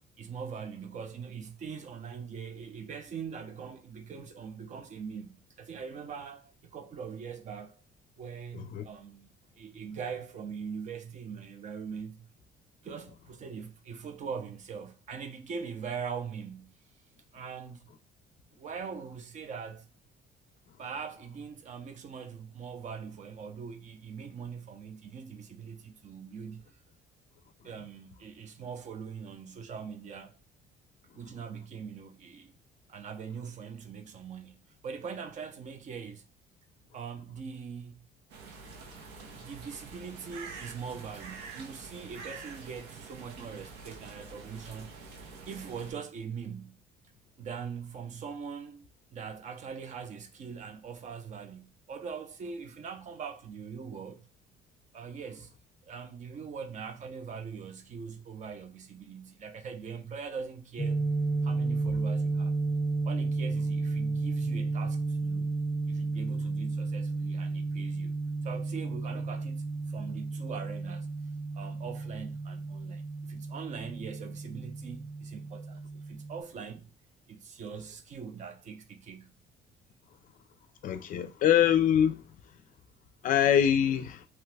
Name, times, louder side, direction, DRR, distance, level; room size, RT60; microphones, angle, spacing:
voice 1, 0.2-7.8 8.2-12.3 12.8-16.8 17.3-17.9 18.6-19.9 20.8-26.6 27.6-30.4 31.1-32.5 32.9-36.3 36.9-38.1 39.3-44.9 45.5-46.8 47.4-54.3 54.9-55.5 55.9-61.1 61.4-62.6 63.0-65.6 65.9-68.2 68.4-71.1 71.5-76.9 77.3-79.3, right 6 dB, 45° right, 0.5 m, -42 dB
sound 1, 38.3-45.9, right 4 dB, 90° right, 0.7 m, -46 dB
sound 2, 60.8-76.4, right 3 dB, 15° left, 0.8 m, -32 dB
voice 2, 80.8-82.2 83.2-84.3, left 9 dB, 55° left, 0.4 m, -24 dB
2.9 x 2.3 x 3.2 m
cardioid pair, 110°, 17 cm